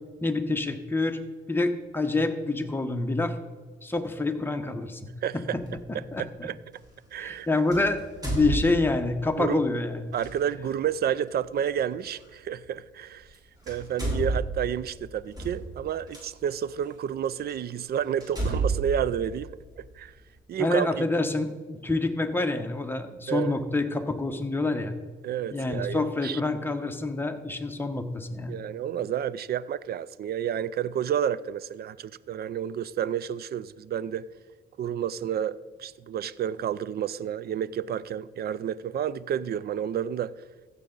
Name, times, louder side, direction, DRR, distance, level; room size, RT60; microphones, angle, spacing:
voice 1, 0.2-1.2 1.5-3.4 3.8-5.1 5.3-5.6 5.9-6.5 7.2-10.1 20.6-24.9 25.5-28.6, left 2 dB, 10° left, 1.1 m, -27 dB
voice 2, 5.2-5.6 6.2-6.6 7.1-7.5 9.4-9.6 10.1-13.3 13.7-19.5 20.0-20.1 20.5-21.0 23.3-23.5 25.2-26.4 28.5-34.2 34.8-40.3, right 9 dB, 55° right, 0.4 m, -30 dB
sound 1, 5.6-5.8 7.7-9.2 10.1-10.3 12.2-12.3 13.2-13.4 13.6-16.2 16.9-17.0 17.5-17.6 18.2-20.0, right 2 dB, 20° right, 3.5 m, -31 dB
15.0 x 6.8 x 3.9 m
cardioid pair, 90°, 20 cm